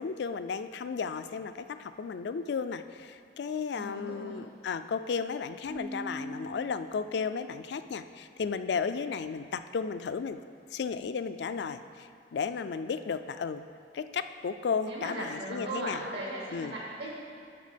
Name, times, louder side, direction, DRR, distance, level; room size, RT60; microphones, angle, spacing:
voice 1, 0.0-10.4 10.7-13.6 13.9-16.0 16.5-16.7, left 5 dB, 70° left, 11 dB, 0.3 m, -34 dB
voice 2, 3.7-4.4 14.9-17.1, right 2 dB, 75° right, -4 dB, 2.2 m, -38 dB
Keyboard (musical), 5.7-7.5, right 1 dB, 25° right, 0.4 m, -42 dB
12.0 x 4.1 x 5.1 m, 2.4 s
head